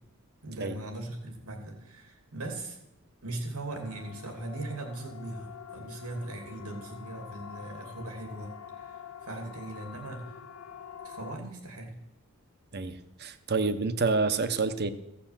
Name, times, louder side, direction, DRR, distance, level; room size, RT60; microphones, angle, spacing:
voice 1, 0.4-2.8 3.2-8.5 8.8-10.4 11.0-11.9, right 2 dB, 90° right, 3 dB, 2.8 m, -39 dB
Siren, 3.8-11.4, left 7 dB, 70° left, 0.8 m, -46 dB
voice 2, 12.7-14.9, right 4 dB, 45° right, 11 dB, 0.8 m, -28 dB
15.5 x 6.8 x 7.4 m, 0.88 s
head